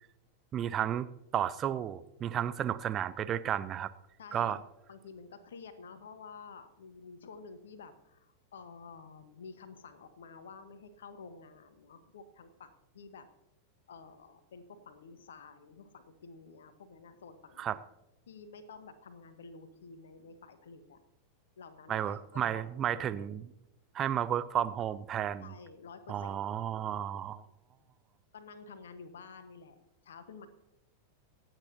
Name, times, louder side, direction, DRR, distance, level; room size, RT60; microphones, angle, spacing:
voice 1, 0.5-1.1 1.3-3.9 4.3-4.6 17.6-17.8 21.9-23.4 23.9-25.5 26.1-27.4, right 10 dB, 30° right, 14 dB, 0.5 m, -32 dB
voice 2, 4.2-4.6 4.9-13.3 13.9-17.7 18.3-21.0 21.6-23.3 25.4-26.4 28.3-30.5, left 5 dB, 65° left, 11 dB, 1.3 m, -51 dB
26.0 x 8.9 x 2.9 m, 0.89 s
figure-of-eight pair, 90°, 0 cm